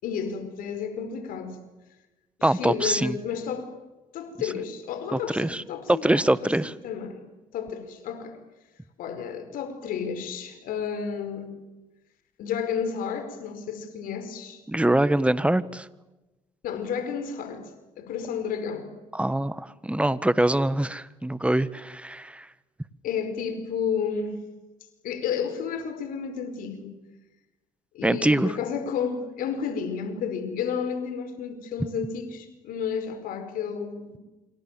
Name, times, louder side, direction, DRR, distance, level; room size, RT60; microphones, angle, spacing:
voice 1, 0.0-1.6 2.4-3.7 4.1-6.5 6.8-7.2 7.5-8.4 9.0-11.6 12.4-14.6 16.6-17.7 18.0-18.9 23.0-24.4 25.0-26.9 27.9-34.2, left 7 dB, 75° left, 5.0 m, -31 dB
voice 2, 2.4-3.2 5.1-5.6 5.9-6.7 14.7-15.8 19.1-22.4 28.0-28.5, right 1 dB, 10° right, 1.5 m, -24 dB
28.0 x 25.5 x 7.7 m
supercardioid pair, 65°, 15 cm